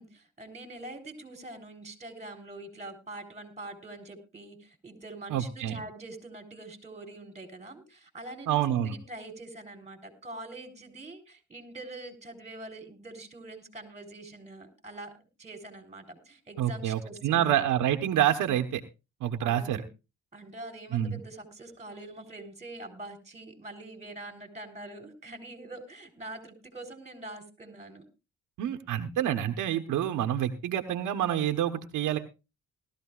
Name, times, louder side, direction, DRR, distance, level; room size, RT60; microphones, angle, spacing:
voice 1, 0.0-8.6 8.8-15.1 15.4-17.7 19.4-19.9 20.3-28.0, right 2 dB, 20° right, 6 dB, 3.6 m, -44 dB
voice 2, 5.3-5.8 8.5-8.9 16.6-18.8 19.2-19.8 20.9-21.2 28.6-32.2, right 11 dB, 85° right, 7 dB, 1.1 m, -27 dB
18.5 x 13.5 x 2.4 m, 0.28 s
cardioid pair, 90°, 30 cm